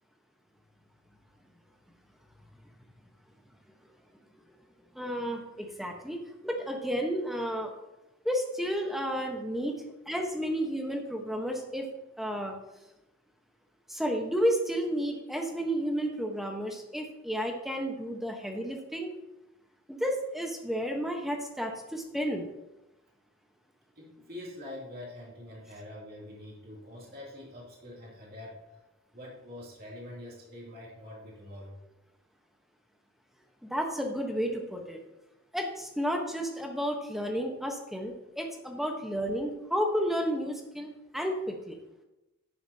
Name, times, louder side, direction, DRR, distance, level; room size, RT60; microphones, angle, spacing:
voice 1, 4.9-7.7 8.2-9.7 10.1-11.9 12.2-12.5 13.9-19.1 19.9-22.4 33.6-35.0 35.5-41.8, equal, ahead, 2 dB, 1.1 m, -32 dB
voice 2, 24.0-28.7 29.1-31.8, left 1 dB, 45° right, -5 dB, 2.7 m, -45 dB
11.0 x 8.4 x 2.8 m, 0.97 s
head